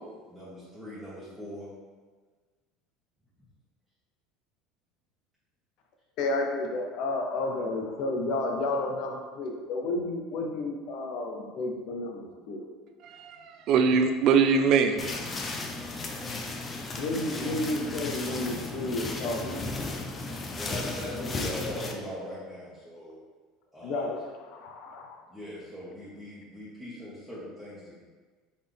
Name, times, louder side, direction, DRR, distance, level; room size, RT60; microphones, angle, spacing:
voice 1, 0.3-1.7 20.5-23.2 23.7-24.1 25.3-28.0, left 1 dB, 10° right, -11 dB, 1.4 m, -40 dB
voice 2, 6.2-12.2 12.5-12.6 16.1-16.6 16.9-19.7 23.8-25.2, left 2 dB, 60° left, 2 dB, 0.7 m, -31 dB
voice 3, 13.0-15.7, right 5 dB, 55° right, 7 dB, 0.4 m, -24 dB
sound 1, 15.0-21.9, left 3 dB, 30° left, 0.6 m, -35 dB
4.0 x 3.4 x 3.4 m, 1.4 s
hypercardioid pair, 85°, 0 cm